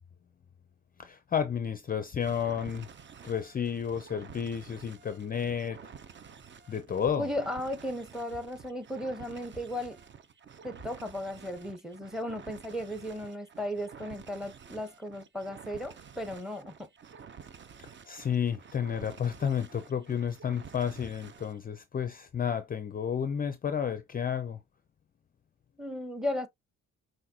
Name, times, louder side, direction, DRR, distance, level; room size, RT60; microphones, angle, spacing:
voice 1, 1.0-2.9 3.2-5.8 6.7-7.3 17.8-24.6, left 8 dB, 30° left, 0.5 m, -31 dB
sound 1, 2.2-21.6, right 7 dB, 40° right, 0.6 m, -50 dB
sound 2, 7.0-7.7 8.3-8.9 9.5-10.2 10.8-11.4, right 2 dB, 65° right, 1.7 m, -55 dB
voice 2, 7.2-10.0 10.6-16.9 25.8-26.5, left 1 dB, ahead, 0.9 m, -35 dB
5.6 x 2.6 x 2.8 m
cardioid pair, 90°, 30 cm